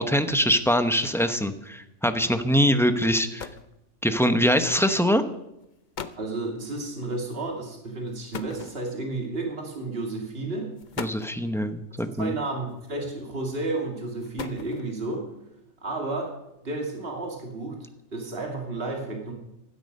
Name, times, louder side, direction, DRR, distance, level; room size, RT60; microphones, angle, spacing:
voice 1, 0.0-3.5 4.0-5.2 11.0-12.3, equal, ahead, 9 dB, 0.7 m, -23 dB
sound 1, 2.8-2.9 3.1-3.8 4.8-5.0 5.6-5.7 5.9-6.3 8.3-9.2 10.1-10.3 10.8-11.4 12.7-13.2 14.0-15.1, left 5 dB, 45° left, 0.8 m, -39 dB
voice 2, 6.2-10.7 11.3-11.4 12.2-15.3 15.8-16.4 16.6-17.8 18.1-19.3, right 2 dB, 45° right, 1 dB, 2.8 m, -32 dB
16.0 x 13.0 x 5.4 m, 0.86 s
omnidirectional pair, 1.3 m